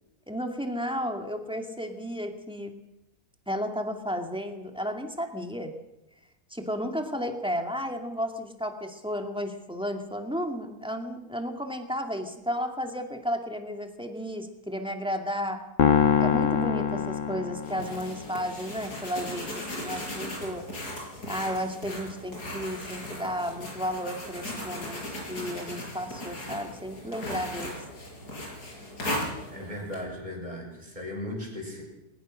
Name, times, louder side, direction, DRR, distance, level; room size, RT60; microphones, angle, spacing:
voice 1, 0.3-2.8 3.5-5.8 6.5-15.7 16.2-20.7 21.3-27.9, equal, 5° right, 4 dB, 2.2 m, -33 dB
sound 1, 15.8-18.2, left 7 dB, 55° left, 1.4 m, -24 dB
sound 2, 17.6-30.0, left 1 dB, 85° left, 6.4 m, -37 dB
voice 2, 29.5-31.8, left 1 dB, 25° right, 0 dB, 6.6 m, -37 dB
21.5 x 19.0 x 6.5 m, 0.91 s
omnidirectional pair, 1.6 m